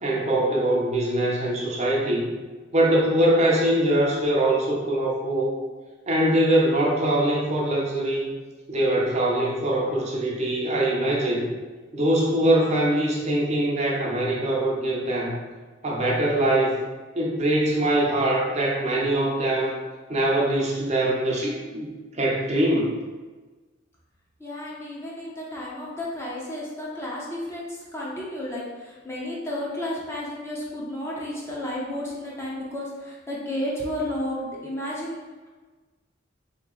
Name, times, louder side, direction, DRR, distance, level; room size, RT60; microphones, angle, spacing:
voice 1, 0.0-2.3 2.7-5.6 6.1-8.3 8.7-11.5 11.9-15.4 15.8-16.8 17.2-19.8 20.1-21.9 22.1-22.9, right 1 dB, 35° right, -3 dB, 0.6 m, -23 dB
voice 2, 24.4-35.2, left 1 dB, 15° left, -5 dB, 0.7 m, -32 dB
3.7 x 3.0 x 3.7 m, 1.3 s
head